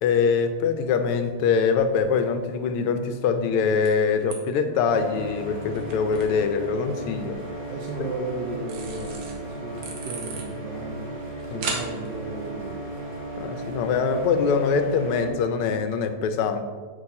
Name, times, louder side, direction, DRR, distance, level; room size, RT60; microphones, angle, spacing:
voice 1, 0.0-7.4 11.5-11.6 13.4-16.6, left 5 dB, 85° left, 8 dB, 1.6 m, -23 dB
sound 1, 0.8-14.9, right 3 dB, 85° right, 2.0 m, -42 dB
sound 2, 4.9-15.3, right 1 dB, 25° right, 2.3 m, -36 dB
voice 2, 7.7-11.1 11.5-12.8, right 3 dB, 65° right, 0 dB, 1.1 m, -35 dB
8.2 x 6.2 x 2.8 m, 1.5 s
omnidirectional pair, 2.4 m